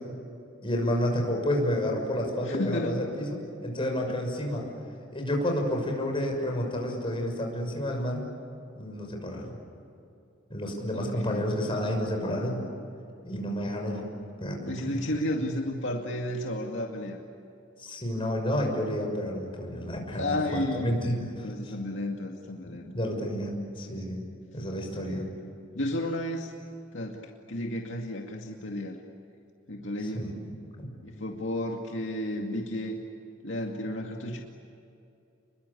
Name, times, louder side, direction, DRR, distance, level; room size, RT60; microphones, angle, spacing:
voice 1, 0.6-4.7 5.1-8.2 8.7-9.5 10.5-12.6 13.2-14.1 14.4-15.0 17.8-20.4 20.7-21.7 22.6-24.2 24.5-25.2 30.1-30.3 30.8-30.9, equal, 25° left, 2 dB, 6.3 m, -30 dB
voice 2, 2.4-3.0 4.1-4.2 10.9-11.6 14.7-17.2 20.1-21.0 21.4-22.9 25.0-25.3 25.8-26.5 26.9-27.2 27.5-29.0 29.7-30.3 31.0-33.0 33.4-34.4, left 1 dB, 70° left, 1 dB, 2.3 m, -32 dB
30.0 x 22.5 x 8.6 m, 2.7 s
head